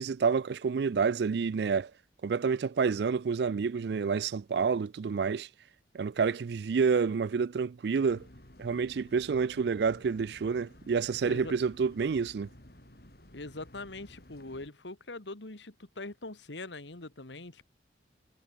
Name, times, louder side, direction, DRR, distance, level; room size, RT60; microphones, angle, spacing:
voice 1, 0.0-1.9 2.2-5.5 5.9-8.2 8.6-12.5, right 5 dB, 65° right, 0.4 m, -28 dB
sound 1, 8.1-14.7, left 1 dB, 55° left, 4.5 m, -54 dB
voice 2, 13.3-17.6, left 2 dB, 85° left, 2.1 m, -42 dB
head